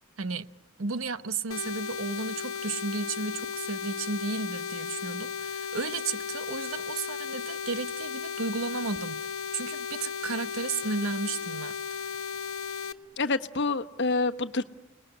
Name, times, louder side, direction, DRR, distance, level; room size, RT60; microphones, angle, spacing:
voice 1, 0.8-11.8, right 4 dB, 80° right, 0.9 m, -33 dB
sound 1, 1.5-12.9, left 6 dB, 80° left, 1.2 m, -35 dB
voice 2, 13.2-14.6, left 3 dB, 60° left, 1.2 m, -27 dB
29.0 x 20.0 x 9.9 m
head